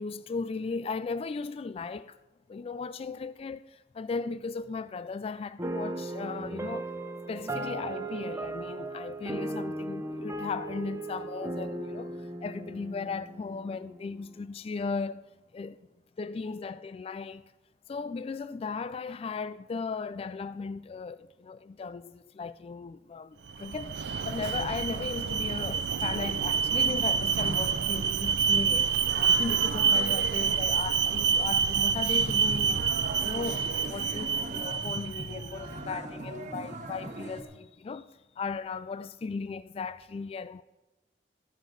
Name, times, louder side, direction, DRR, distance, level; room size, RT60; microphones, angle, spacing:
voice 1, 0.0-2.2 2.5-6.9 7.3-15.9 16.2-17.5 17.9-33.0 33.2-40.6, left 4 dB, 35° left, 0.3 m, -37 dB
sound 1, 5.6-14.1, right 2 dB, 15° right, 0.7 m, -37 dB
Alarm, 23.5-35.5, right 6 dB, 70° right, 0.5 m, -27 dB
sound 2, 32.2-37.4, right 1 dB, 45° right, 1.3 m, -40 dB
13.0 x 13.0 x 3.9 m
head